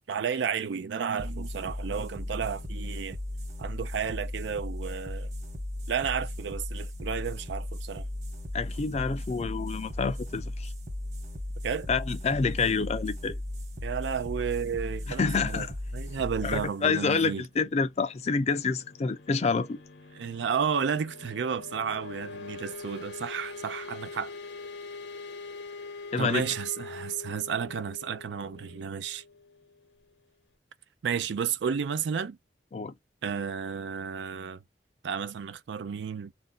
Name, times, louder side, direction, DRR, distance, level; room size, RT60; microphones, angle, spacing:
voice 1, 0.1-3.2 3.6-5.3 5.9-8.1 11.6-11.9 13.8-15.7 15.9-17.4 20.1-24.3 26.2-29.2 31.0-32.4 33.2-34.6 35.0-36.3, right 7 dB, 80° right, 0.4 m, -32 dB
sound 1, 1.2-18.2, left 1 dB, 40° right, 1.1 m, -37 dB
voice 2, 8.5-10.7 11.9-13.4 15.2-15.7 16.4-19.8 26.1-26.4 32.7-32.9, left 4 dB, 40° left, 0.4 m, -28 dB
sound 2, 17.6-30.1, left 4 dB, 80° left, 0.8 m, -44 dB
2.5 x 2.1 x 3.7 m
head